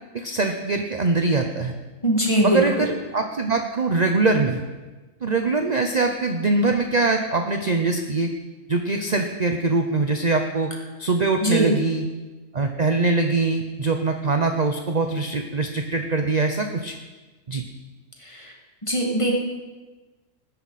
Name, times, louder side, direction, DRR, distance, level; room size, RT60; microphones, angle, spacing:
voice 1, 0.1-1.7 2.4-4.6 5.2-8.3 8.7-10.7 11.0-12.1 12.5-16.9 17.5-17.6, right 3 dB, 40° right, 4 dB, 0.8 m, -23 dB
voice 2, 2.0-2.9 11.4-11.7 18.3-18.5 18.8-19.3, right 1 dB, 25° left, -1 dB, 2.1 m, -21 dB
19.5 x 10.0 x 4.2 m, 1.2 s
omnidirectional pair, 1.4 m